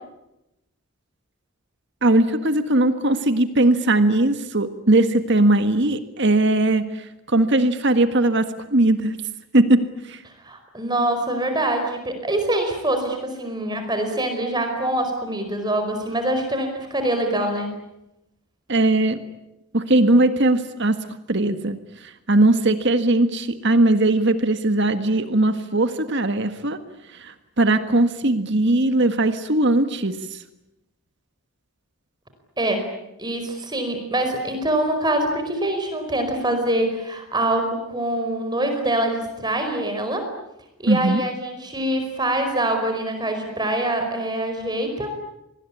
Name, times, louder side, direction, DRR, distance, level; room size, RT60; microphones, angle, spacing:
voice 1, 2.0-9.1 9.5-9.8 10.1-10.2 18.7-19.2 19.7-21.0 21.3-21.8 22.0-26.8 27.2-30.4 40.9-41.2, right 2 dB, 55° right, 9 dB, 1.7 m, -19 dB
voice 2, 10.4-17.7 32.6-32.9 33.2-40.3 40.8-45.1, right 1 dB, 20° right, 5 dB, 4.9 m, -24 dB
26.5 x 20.0 x 9.9 m, 0.88 s
head